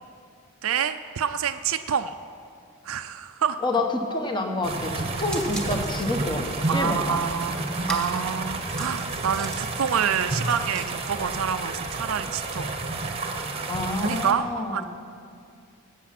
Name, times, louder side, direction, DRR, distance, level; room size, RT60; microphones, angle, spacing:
voice 1, 0.6-2.1 2.8-3.6 6.7-7.6 7.9-12.7 14.0-14.9, right 7 dB, 65° right, 8 dB, 0.5 m, -27 dB
voice 2, 3.6-7.2 13.7-14.8, left 2 dB, 20° left, 3 dB, 1.0 m, -28 dB
sound 1, 4.6-9.6, left 1 dB, 70° left, 0.9 m, -44 dB
sound 2, 4.6-14.3, right 2 dB, 25° right, 1.0 m, -31 dB
sound 3, 5.3-10.8, right 1 dB, 5° left, 1.5 m, -40 dB
19.5 x 8.3 x 5.9 m, 2.3 s
head